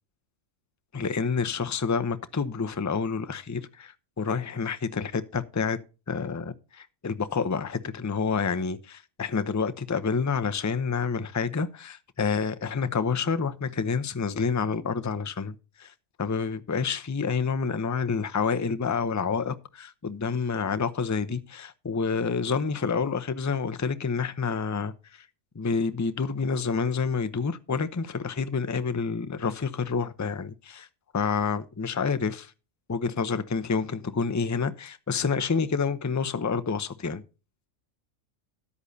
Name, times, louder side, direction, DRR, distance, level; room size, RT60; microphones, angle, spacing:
voice 1, 0.9-5.8 6.1-15.9 16.2-24.9 25.5-30.9 31.1-32.5 32.9-37.2, left 5 dB, 20° left, 0.5 m, -28 dB
13.5 x 9.8 x 2.7 m
omnidirectional pair, 1.4 m